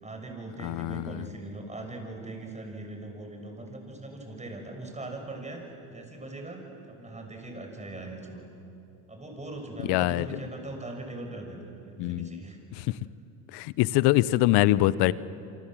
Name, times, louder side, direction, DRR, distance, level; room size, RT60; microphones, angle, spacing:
voice 1, 0.0-8.5 9.1-12.6 12.9-13.0, right 2 dB, 15° right, 3 dB, 6.4 m, -40 dB
voice 2, 0.6-1.3 9.9-10.3 12.0-12.4 12.8-12.9 13.5-15.1, left 16 dB, 65° left, 18 dB, 0.9 m, -24 dB
28.0 x 25.0 x 7.7 m, 2.8 s
supercardioid pair, 85°, 43 cm